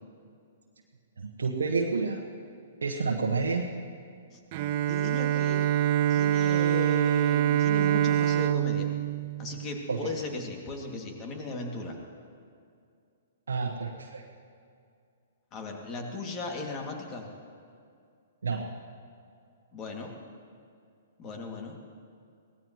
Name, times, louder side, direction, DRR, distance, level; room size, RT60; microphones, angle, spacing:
voice 1, 1.2-2.2 2.8-3.7 9.9-10.1 13.5-14.2 18.4-18.7, right 4 dB, 70° right, 0 dB, 1.3 m, -29 dB
Bowed string instrument, 4.5-10.2, right 11 dB, 40° right, 0.6 m, -25 dB
voice 2, 4.9-5.7 6.1-8.9 9.4-12.0 15.5-17.3 19.7-20.2 21.2-21.8, left 3 dB, 25° left, 1 dB, 2.5 m, -37 dB
23.5 x 18.5 x 3.2 m, 2.4 s
figure-of-eight pair, 115°, 0 cm